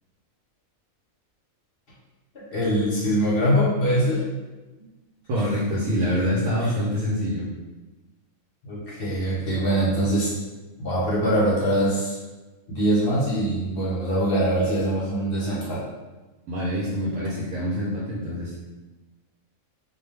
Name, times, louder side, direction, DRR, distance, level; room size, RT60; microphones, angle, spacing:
voice 1, 2.5-4.2 5.4-5.5 6.6-6.7 8.6-10.3 10.8-12.2 12.7-15.8, right 1 dB, 50° left, -7 dB, 0.8 m, -23 dB
voice 2, 5.3-7.4 16.5-18.6, equal, 75° right, -6 dB, 1.0 m, -25 dB
2.4 x 2.2 x 3.2 m, 1.2 s
omnidirectional pair, 1.4 m